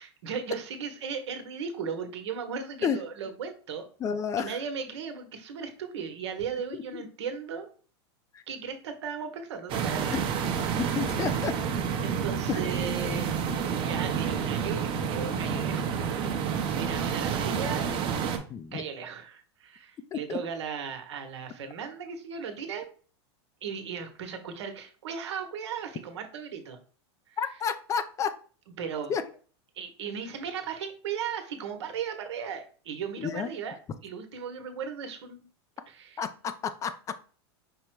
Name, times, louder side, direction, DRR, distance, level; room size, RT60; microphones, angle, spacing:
voice 1, 0.0-3.9 4.4-7.7 8.5-10.2 12.0-13.4 13.8-17.9 18.7-22.9 23.6-26.8 27.3-27.4 28.8-29.1 29.7-33.8 34.0-35.4 35.9-36.2, right 6 dB, 85° right, 6 dB, 1.0 m, -36 dB
voice 2, 4.0-4.6 6.7-7.0 8.3-8.4 10.1-10.2 10.8-11.5 12.5-12.6 18.5-18.8 20.1-20.4 27.4-28.3 29.1-29.2 33.2-33.5 36.2-36.9, left 7 dB, 20° left, 12 dB, 0.3 m, -30 dB
sound 1, 9.7-18.4, right 7 dB, 35° right, 0.8 m, -29 dB
5.2 x 2.1 x 4.5 m, 0.41 s
supercardioid pair, 130°, 14 cm